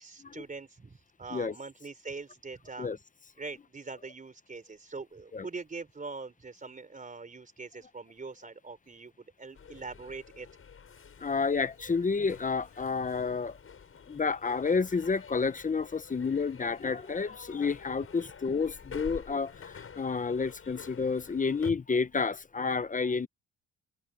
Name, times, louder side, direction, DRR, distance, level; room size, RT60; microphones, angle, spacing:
voice 1, 0.0-2.9 3.4-10.5, right 4 dB, 25° right, 4.1 m, -43 dB
sound 1, 9.5-21.7, left 6 dB, 45° left, 7.1 m, -49 dB
voice 2, 11.2-13.6 14.1-23.3, left 5 dB, 25° left, 0.9 m, -30 dB
open air
cardioid pair, 90°, 30 cm